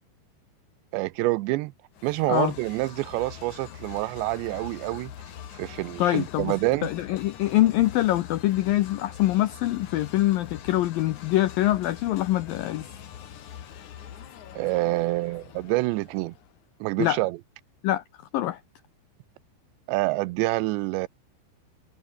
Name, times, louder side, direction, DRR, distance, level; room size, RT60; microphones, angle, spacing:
voice 1, 0.9-1.7 2.0-5.1 5.5-6.9 14.5-16.3 16.8-17.4 19.9-21.1, right 20 dB, 85° right, 2.8 m, -27 dB
sound 1, 1.9-16.6, left 9 dB, 50° left, 2.6 m, -44 dB
voice 2, 6.0-6.5 6.8-12.9 17.0-17.2 17.8-18.0 18.3-18.6, left 15 dB, 90° left, 2.0 m, -24 dB
omnidirectional pair, 5.2 m